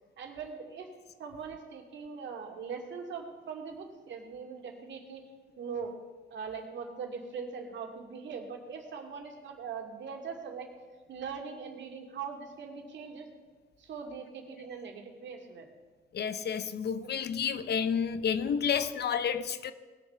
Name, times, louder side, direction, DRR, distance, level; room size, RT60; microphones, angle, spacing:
voice 1, 0.2-0.9 1.2-5.2 5.6-5.9 6.3-10.7 11.1-13.3 13.8-15.7, right 6 dB, 65° right, 2.4 m, -41 dB
voice 2, 16.1-19.7, left 7 dB, 55° left, 0.8 m, -30 dB
19.5 x 7.0 x 5.7 m
cardioid pair, 90°, 20 cm